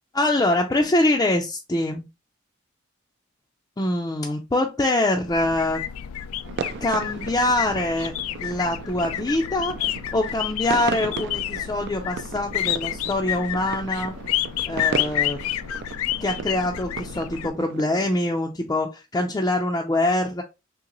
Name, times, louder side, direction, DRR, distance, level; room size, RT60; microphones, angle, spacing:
voice 1, 0.1-2.0 3.8-5.8 6.8-8.1 8.4-9.8 10.1-14.1 14.7-15.4 16.2-20.4, left 1 dB, 20° left, 1 dB, 0.4 m, -24 dB
sound 1, 5.3-17.5, left 11 dB, 85° left, 0.3 m, -30 dB
sound 2, 6.4-18.1, right 6 dB, 55° right, 0.3 m, -36 dB
3.8 x 3.0 x 2.9 m, 0.25 s
head